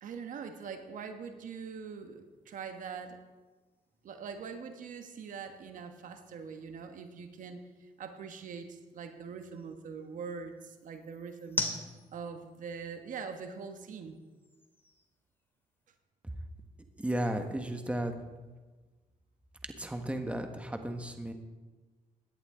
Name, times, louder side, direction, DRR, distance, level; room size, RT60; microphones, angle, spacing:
voice 1, 0.0-3.2 4.0-11.6 12.1-14.2, right 6 dB, 70° right, 7 dB, 1.3 m, -43 dB
sound 1, 1.8-16.0, left 2 dB, 15° left, 2.4 m, -46 dB
voice 2, 17.0-18.1 19.8-21.3, right 1 dB, 10° right, 5 dB, 1.5 m, -34 dB
17.0 x 11.0 x 3.8 m, 1.3 s
cardioid pair, 80°, 14 cm